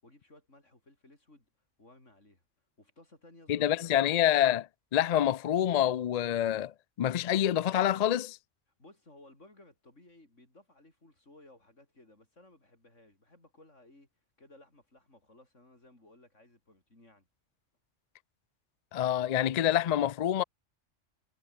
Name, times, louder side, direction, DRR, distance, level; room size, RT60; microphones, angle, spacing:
voice 1, 0.0-1.5 1.8-2.4 2.8-4.2 8.8-14.1 14.4-17.3, left 2 dB, 85° left, 6.9 m, -58 dB
voice 2, 3.5-6.7 7.0-8.4 18.9-20.4, left 11 dB, 55° left, 0.4 m, -27 dB
omnidirectional pair, 1.2 m